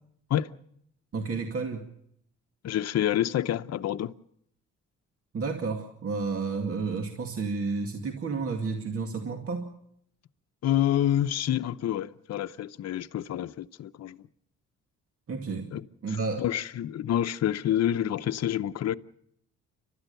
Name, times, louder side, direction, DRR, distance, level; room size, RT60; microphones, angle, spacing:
voice 1, 1.1-1.9 5.3-9.6 15.3-15.7 16.0-16.4, right 4 dB, 50° right, 2.4 m, -31 dB
voice 2, 2.6-4.1 10.6-14.3 15.7-18.9, left 11 dB, 60° left, 0.8 m, -28 dB
30.0 x 13.0 x 6.9 m
cardioid pair, 90°, 30 cm